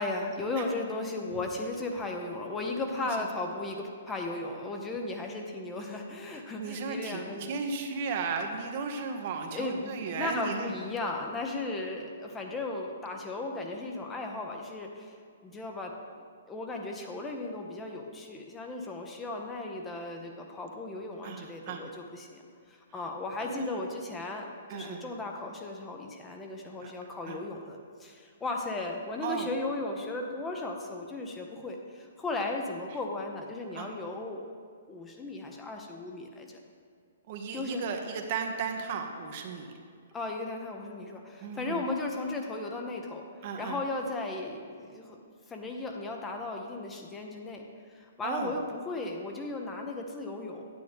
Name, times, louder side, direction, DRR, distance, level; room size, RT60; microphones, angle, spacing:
voice 1, 0.0-7.5 9.5-15.1 15.4-15.9 16.5-34.5 34.9-36.6 37.5-37.8 40.1-43.2 43.6-47.6 47.9-50.7, left 2 dB, 15° left, 1 dB, 0.9 m, -36 dB
voice 2, 6.6-10.7 21.2-21.8 23.4-23.8 24.2-24.3 24.7-25.1 26.8-26.9 27.3-27.4 29.2-29.5 33.7-33.9 37.3-39.7 41.4-41.8 43.4-43.8 48.2-48.6, right 5 dB, 45° right, 4 dB, 0.9 m, -35 dB
9.2 x 9.1 x 3.6 m, 2.2 s
figure-of-eight pair, 120°, 0 cm